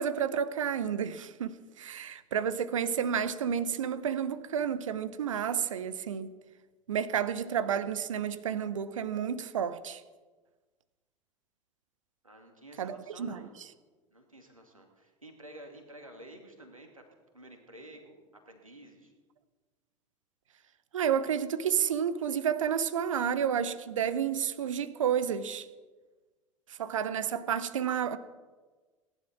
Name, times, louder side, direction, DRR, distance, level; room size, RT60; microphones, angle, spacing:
voice 1, 0.0-6.3 6.9-10.0 12.8-13.5 20.9-25.6 26.7-28.2, right 8 dB, 70° right, 0.9 m, -31 dB
voice 2, 12.2-13.5 14.1-17.0 17.3-18.2 18.5-19.1, right 1 dB, 85° right, 2.5 m, -51 dB
19.0 x 11.0 x 6.0 m
figure-of-eight pair, 75°, 17 cm